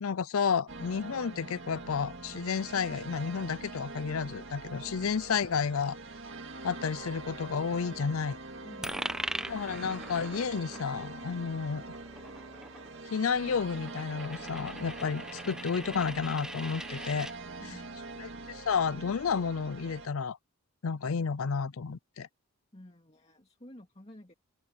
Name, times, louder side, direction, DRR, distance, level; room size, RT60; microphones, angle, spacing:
voice 1, 0.0-6.0 6.6-8.4 9.5-11.8 13.1-17.3 18.2-20.4 20.8-22.3, left 6 dB, 75° left, 0.5 m, -31 dB
sound 1, 0.7-20.1, right 3 dB, 60° right, 2.0 m, -44 dB
voice 2, 4.8-5.1 8.6-9.3 17.6-18.0 22.7-24.3, left 1 dB, 30° left, 2.2 m, -52 dB
Coin (dropping), 8.8-17.3, right 1 dB, 5° right, 0.8 m, -41 dB
head